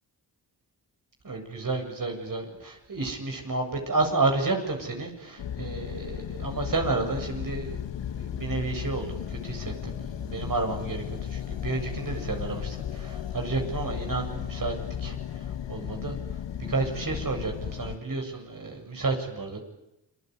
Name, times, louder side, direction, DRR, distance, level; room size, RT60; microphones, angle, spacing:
voice 1, 1.2-15.2 15.7-16.2 16.7-19.6, right 3 dB, 45° right, 3 dB, 7.8 m, -31 dB
sound 1, 5.4-18.0, left 9 dB, 70° left, 1.6 m, -35 dB
29.5 x 21.0 x 9.7 m, 0.90 s
supercardioid pair, 45°, 45 cm